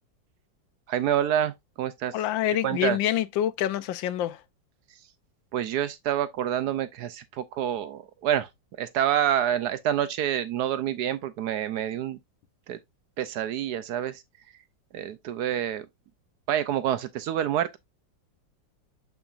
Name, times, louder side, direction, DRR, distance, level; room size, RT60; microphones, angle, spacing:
voice 1, 0.9-2.1 2.6-3.0 5.5-8.5 8.8-12.2 12.7-12.8 13.2-14.2 14.9-15.9 16.5-17.8, right 10 dB, 75° right, 1.0 m, -27 dB
voice 2, 2.1-4.4, left 12 dB, 90° left, 1.4 m, -26 dB
7.0 x 5.7 x 2.5 m
omnidirectional pair, 2.0 m